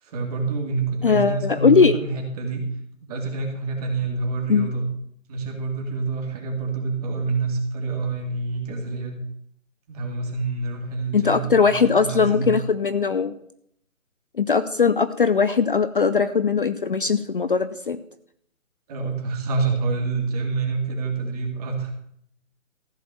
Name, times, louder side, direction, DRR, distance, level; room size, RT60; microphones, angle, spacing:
voice 1, 0.0-2.6 3.1-4.8 5.3-9.2 9.9-12.5 18.9-21.9, right 4 dB, 30° right, 2 dB, 2.7 m, -27 dB
voice 2, 1.0-2.0 4.5-4.7 11.1-13.3 14.4-18.0, left 5 dB, 40° left, 12 dB, 0.6 m, -20 dB
15.0 x 5.2 x 7.7 m, 0.69 s
figure-of-eight pair, 155°, 40 cm